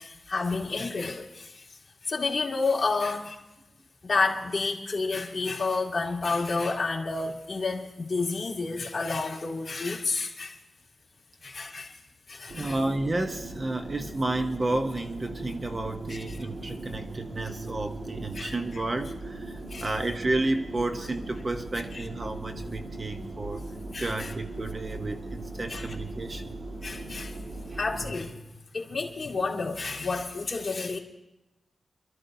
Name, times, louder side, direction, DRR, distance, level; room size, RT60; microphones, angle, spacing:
voice 1, 0.0-3.4 4.0-10.6 11.4-12.0 12.3-12.8 16.1-16.2 18.3-18.5 19.7-19.9 21.9-22.0 23.9-24.3 25.7-25.9 26.8-27.4 27.8-28.5 28.7-31.0, left 3 dB, 40° left, -2 dB, 2.3 m, -30 dB
sound 1, 12.5-28.2, right 2 dB, 65° right, 1.5 m, -39 dB
voice 2, 12.6-23.6 24.0-26.5 27.7-27.8, right 2 dB, 30° right, 6 dB, 0.7 m, -31 dB
27.5 x 13.0 x 2.6 m, 0.95 s
wide cardioid pair, 120°, 0 cm